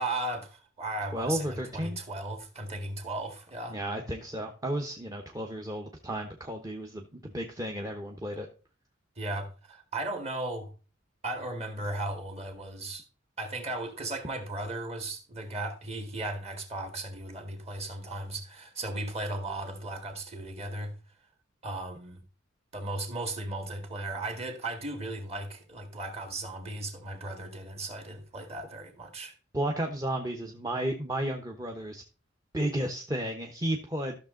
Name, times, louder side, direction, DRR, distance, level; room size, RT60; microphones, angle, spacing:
voice 1, 0.0-3.8 9.2-10.7 11.2-13.1 13.4-20.9 21.6-22.2 22.7-29.3, right 2 dB, 35° right, 2.0 m, -36 dB
voice 2, 1.1-2.0 3.7-8.5 29.5-32.0 32.5-34.2, right 1 dB, 20° right, 1.0 m, -33 dB
13.5 x 6.6 x 3.8 m
head